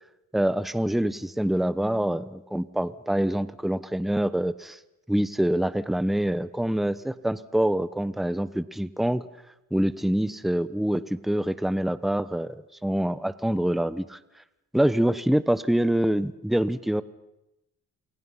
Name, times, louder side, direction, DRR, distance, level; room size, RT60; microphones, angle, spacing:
voice 1, 0.3-4.8 5.1-9.2 9.7-14.2 14.7-17.0, right 1 dB, ahead, 14 dB, 1.0 m, -25 dB
28.5 x 23.0 x 5.7 m, 0.90 s
cardioid pair, 90°, 30 cm